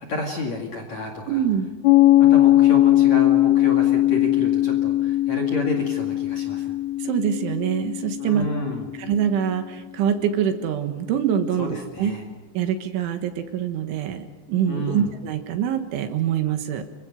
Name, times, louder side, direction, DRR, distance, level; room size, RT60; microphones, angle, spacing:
voice 1, 0.1-1.4 2.2-6.8 8.2-8.9 11.6-12.2 14.7-15.1, left 2 dB, 45° left, 1 dB, 2.5 m, -30 dB
voice 2, 1.3-1.7 7.0-8.5 9.0-12.1 12.6-16.8, right 9 dB, 75° right, 7 dB, 3.7 m, -24 dB
Piano, 1.8-9.1, left 14 dB, 80° left, 3.4 m, -19 dB
29.0 x 24.5 x 5.3 m, 1.2 s
omnidirectional pair, 5.9 m